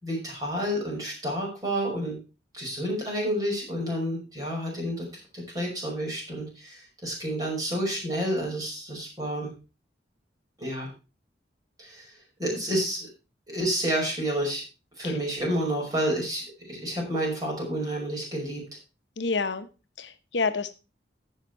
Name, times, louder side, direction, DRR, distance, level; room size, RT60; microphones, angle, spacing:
voice 1, 0.0-2.2 2.5-5.0 5.3-9.5 10.6-10.9 11.8-12.1 12.4-13.1 13.5-14.6 15.0-18.6, equal, 20° right, -2 dB, 5.7 m, -29 dB
voice 2, 19.2-19.7 20.0-20.7, left 4 dB, 85° left, 10 dB, 1.0 m, -28 dB
15.0 x 5.7 x 4.5 m, 0.30 s
head